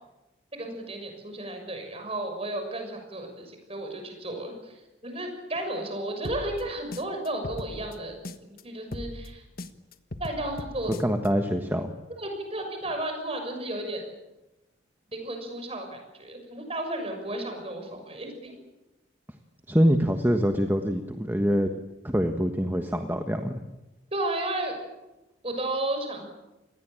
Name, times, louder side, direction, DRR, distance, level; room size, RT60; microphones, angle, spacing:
voice 1, 0.5-8.1 8.4-9.4 10.2-10.9 12.2-14.0 15.1-18.6 24.1-24.8 25.4-26.3, right 1 dB, 30° right, 5 dB, 6.4 m, -33 dB
sound 1, 6.2-8.6 8.9-11.3, left 1 dB, 50° left, 1.5 m, -39 dB
voice 2, 11.0-11.9 19.7-21.7 22.0-23.6, equal, 10° right, 5 dB, 1.4 m, -24 dB
27.5 x 20.0 x 9.0 m, 1.0 s
head